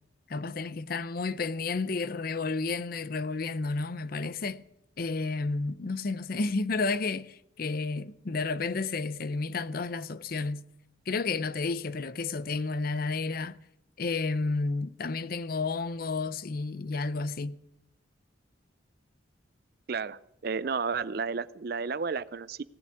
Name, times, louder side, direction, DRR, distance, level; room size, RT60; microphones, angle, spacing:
voice 1, 0.3-4.6 5.0-10.6 11.1-13.6 14.0-17.6, left 3 dB, 45° left, 0.5 m, -31 dB
voice 2, 19.9-22.6, right 5 dB, 50° right, 0.5 m, -32 dB
17.5 x 7.2 x 9.7 m
head